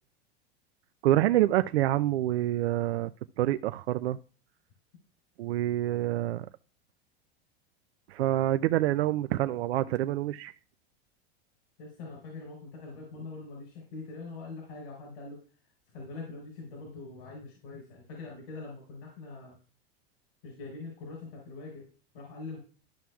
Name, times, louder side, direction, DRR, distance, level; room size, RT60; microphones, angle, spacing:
voice 1, 1.0-3.1 3.4-4.2 5.4-6.5 8.1-10.5, right 14 dB, 85° right, 11 dB, 0.5 m, -27 dB
voice 2, 11.8-15.4 15.9-19.6 20.4-21.8 22.1-22.6, left 3 dB, 75° left, 0 dB, 3.8 m, -43 dB
13.0 x 6.0 x 2.3 m, 0.38 s
hypercardioid pair, 110°, 31 cm